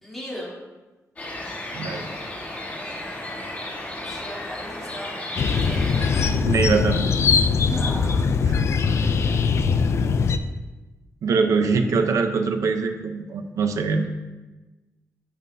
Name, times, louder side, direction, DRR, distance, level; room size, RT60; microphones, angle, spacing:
voice 1, 0.0-0.5 4.0-5.1 5.6-6.1 7.6-8.3 8.9-9.6, equal, 5° left, -8 dB, 3.0 m, -37 dB
sound 1, 1.2-6.3, left 1 dB, 25° left, 1.6 m, -34 dB
voice 2, 1.7-2.1 6.4-7.1 11.2-14.1, right 4 dB, 75° right, 6 dB, 0.8 m, -23 dB
sound 2, 5.4-10.4, left 5 dB, 55° left, 0.4 m, -21 dB
10.5 x 7.5 x 2.7 m, 1.2 s
wide cardioid pair, 170°, 6 cm